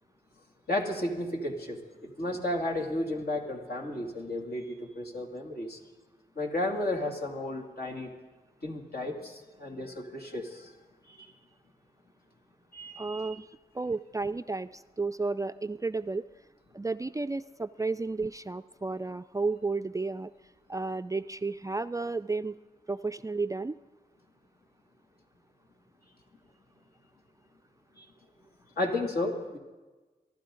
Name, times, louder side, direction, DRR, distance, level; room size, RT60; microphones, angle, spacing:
voice 1, 0.7-5.8 6.4-8.1 8.6-10.8 11.1-11.3 12.7-13.4 27.9-28.1 28.8-29.6, left 1 dB, 65° left, 0 dB, 2.7 m, -33 dB
voice 2, 13.0-13.4 13.7-16.3 16.7-20.3 20.7-22.6 22.9-23.8, right 3 dB, 20° right, 12 dB, 0.4 m, -32 dB
24.0 x 12.0 x 3.9 m, 1.2 s
cardioid pair, 50°, 17 cm